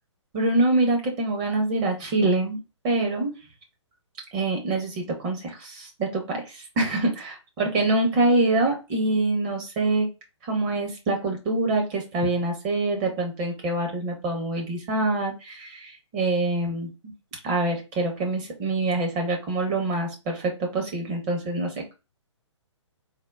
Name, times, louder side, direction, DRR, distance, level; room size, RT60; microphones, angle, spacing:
voice 1, 0.3-2.6 2.8-3.3 4.3-10.1 10.4-17.1 17.4-21.9, right 2 dB, 25° right, 1 dB, 0.7 m, -25 dB
3.5 x 2.1 x 2.3 m, 0.28 s
figure-of-eight pair, 130°, 16 cm